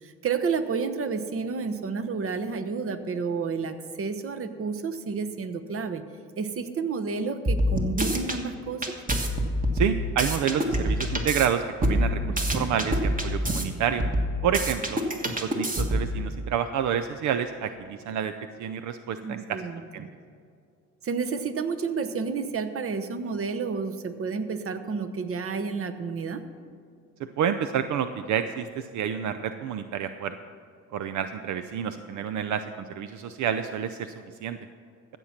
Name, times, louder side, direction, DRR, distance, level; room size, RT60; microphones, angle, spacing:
voice 1, 0.0-6.0 6.4-8.9 12.1-12.5 19.2-20.1 21.0-26.4, right 5 dB, 45° right, 9 dB, 1.0 m, -30 dB
sound 1, 7.5-8.4 8.8-11.5 11.8-13.6 14.0-16.1, equal, 25° right, 1.6 m, -26 dB
voice 2, 9.7-14.0 14.4-15.0 15.4-18.3 18.6-19.6 19.9-20.1 27.4-30.4 30.9-32.6 32.9-34.1 34.4-34.6, right 8 dB, 75° right, 10 dB, 0.6 m, -29 dB
14.5 x 7.4 x 5.8 m, 2.4 s
cardioid pair, 90°, 30 cm